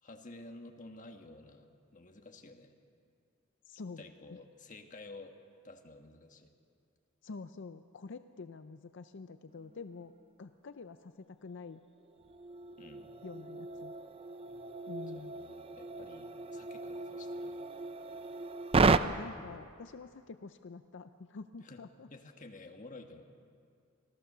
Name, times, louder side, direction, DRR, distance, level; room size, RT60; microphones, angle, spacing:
voice 1, 0.0-2.7 4.0-5.3 5.6-6.5 12.8-13.1 15.1-17.6 21.6-21.8 22.1-23.3, left 2 dB, 35° left, 4 dB, 1.6 m, -51 dB
voice 2, 3.7-4.0 7.2-11.8 13.2-13.9 14.9-15.4 18.8-22.1, left 4 dB, 55° left, 10 dB, 0.5 m, -47 dB
sound 1, 9.6-9.8 10.2-10.3 12.0-19.0, right 4 dB, 25° right, 0.4 m, -34 dB
26.0 x 17.0 x 6.8 m, 2.4 s
head